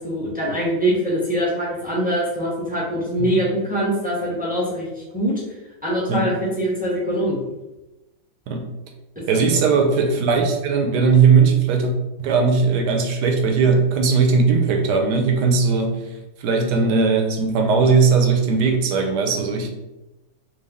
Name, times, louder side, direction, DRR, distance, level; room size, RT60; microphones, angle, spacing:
voice 1, 0.0-4.9 5.1-5.3 5.8-7.4 9.3-9.6, equal, 10° right, -6 dB, 0.5 m, -23 dB
voice 2, 9.3-11.9 12.2-16.0 16.4-19.7, right 5 dB, 75° right, 4 dB, 1.1 m, -18 dB
3.5 x 2.6 x 3.4 m, 1.0 s
omnidirectional pair, 1.9 m